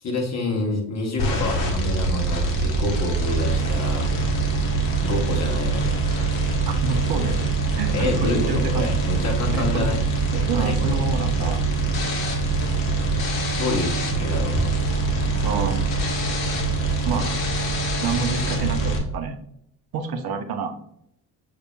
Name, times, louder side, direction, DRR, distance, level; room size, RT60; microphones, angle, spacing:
voice 1, 0.0-4.1 5.0-6.3 7.9-10.0 10.5-11.0 13.5-14.7, left 2 dB, 35° left, 0 dB, 1.3 m, -27 dB
sound 1, 1.2-19.0, right 3 dB, 65° left, 1.2 m, -24 dB
voice 2, 6.7-8.9 9.5-9.9 10.3-11.6 15.4-15.8 17.0-17.3 18.0-19.4 19.9-20.7, right 4 dB, 50° right, 7 dB, 0.8 m, -28 dB
6.6 x 2.9 x 2.4 m, 0.73 s
hypercardioid pair, 50°, 49 cm